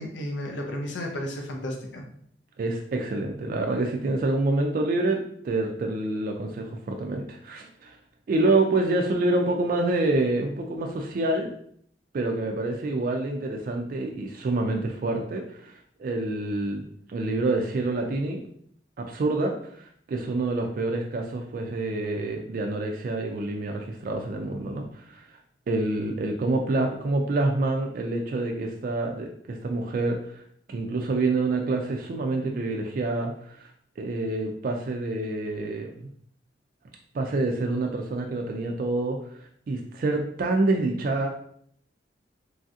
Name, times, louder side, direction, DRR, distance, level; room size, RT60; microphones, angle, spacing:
voice 1, 0.0-2.0, left 1 dB, 90° left, 1 dB, 0.5 m, -33 dB
voice 2, 2.6-8.0 8.3-11.5 12.1-18.5 19.0-25.3 25.7-30.4 30.7-33.7 34.0-36.1 37.1-41.3, right 2 dB, 50° right, 2 dB, 0.3 m, -27 dB
3.1 x 2.6 x 2.4 m, 0.65 s
head